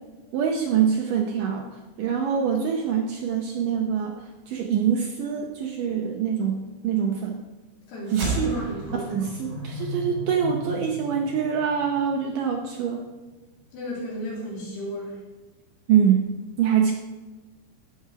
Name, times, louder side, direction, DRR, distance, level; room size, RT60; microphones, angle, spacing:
voice 1, 0.3-1.7 2.0-4.1 4.5-7.4 8.1-8.5 9.1-13.1 15.9-16.9, right 7 dB, 75° right, 2 dB, 2.0 m, -24 dB
sound 1, 8.1-12.7, right 1 dB, 55° right, 5.8 m, -33 dB
voice 2, 8.4-9.1 13.7-15.2, equal, 85° left, -4 dB, 5.3 m, -33 dB
16.5 x 7.2 x 4.8 m, 1.2 s
omnidirectional pair, 4.7 m